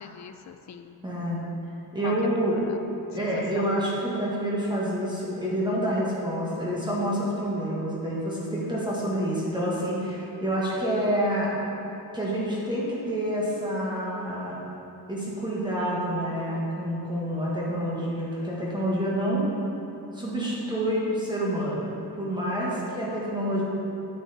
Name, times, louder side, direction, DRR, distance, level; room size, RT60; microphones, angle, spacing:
voice 1, 0.0-1.0 2.0-2.1 2.4-2.9 3.2-3.3 3.5-3.7 22.7-23.0, left 8 dB, 45° left, 8 dB, 0.5 m, -42 dB
voice 2, 1.0-1.5 1.9-2.6 3.1-11.5 12.1-14.6 15.1-19.5 20.1-21.8 22.2-23.6, equal, 10° right, -7 dB, 1.5 m, -28 dB
9.4 x 7.6 x 4.2 m, 2.9 s
cardioid pair, 170°, 39 cm